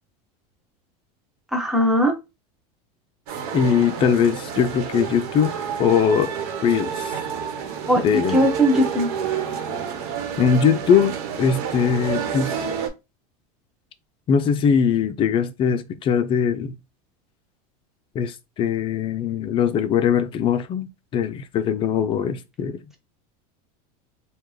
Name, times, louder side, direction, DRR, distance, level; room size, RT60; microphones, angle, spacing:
voice 1, 1.5-2.2 7.9-8.0 8.3-9.1, equal, ahead, 0.9 m, -19 dB
sound 1, 3.3-12.9, right 7 dB, 65° right, 1.1 m, -29 dB
voice 2, 3.5-5.5 5.8-6.3 6.6-7.2 7.9-8.5 10.4-12.6 14.3-16.7 18.1-20.9 21.1-22.8, left 7 dB, 25° left, 0.4 m, -21 dB
3.6 x 2.3 x 3.2 m
supercardioid pair, 145°, 20 cm